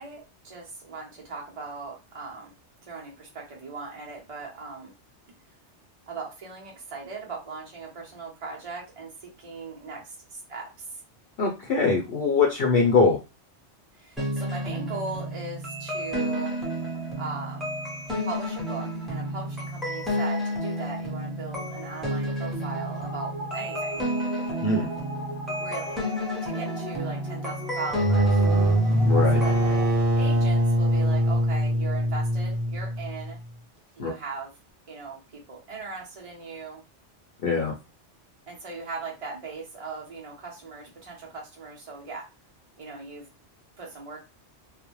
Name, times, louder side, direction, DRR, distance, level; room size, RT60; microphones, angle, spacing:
voice 1, 0.0-2.5 2.8-4.9 6.1-10.8 13.9-16.5 17.2-17.7 18.2-24.1 25.6-26.0 26.4-28.4 28.9-29.8 30.2-33.4 34.0-34.5 34.9-36.8 38.5-42.3 42.8-43.3 43.8-44.2, right 4 dB, 35° right, -2 dB, 0.6 m, -39 dB
voice 2, 11.4-13.2 24.6-24.9 29.0-29.4 34.0-34.1 37.4-37.7, left 4 dB, 60° left, 0 dB, 0.7 m, -22 dB
sound 1, 14.2-29.9, equal, ahead, 0.7 m, -31 dB
sound 2, 27.9-33.4, right 1 dB, 75° right, 1.0 m, -23 dB
2.4 x 2.1 x 2.9 m, 0.27 s
omnidirectional pair, 1.2 m